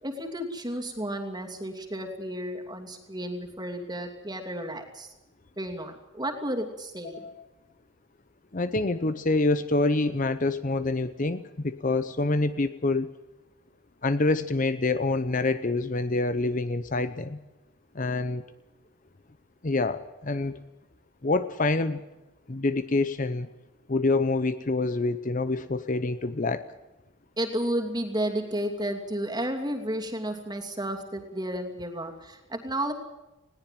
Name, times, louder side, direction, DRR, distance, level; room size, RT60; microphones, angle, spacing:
voice 1, 0.0-5.1 5.6-7.3 27.4-32.9, right 1 dB, 20° right, 3 dB, 2.7 m, -32 dB
voice 2, 8.5-13.1 14.0-17.4 17.9-18.4 19.6-20.6 21.2-22.0 22.5-23.5 23.9-26.7, left 2 dB, 35° left, 12 dB, 0.8 m, -26 dB
20.5 x 18.0 x 7.6 m, 1.0 s
head